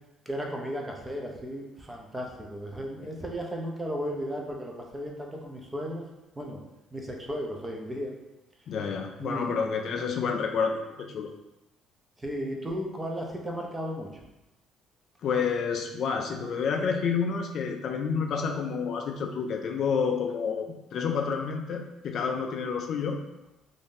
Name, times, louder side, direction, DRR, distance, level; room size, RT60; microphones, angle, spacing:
voice 1, 0.3-6.0 6.4-6.6 6.9-8.1 9.2-9.6 12.2-14.1, equal, 10° right, 0 dB, 0.5 m, -35 dB
voice 2, 8.7-11.3 15.2-23.2, left 6 dB, 50° left, 4 dB, 0.3 m, -29 dB
2.6 x 2.6 x 3.6 m, 0.96 s
cardioid pair, 130°, 0 cm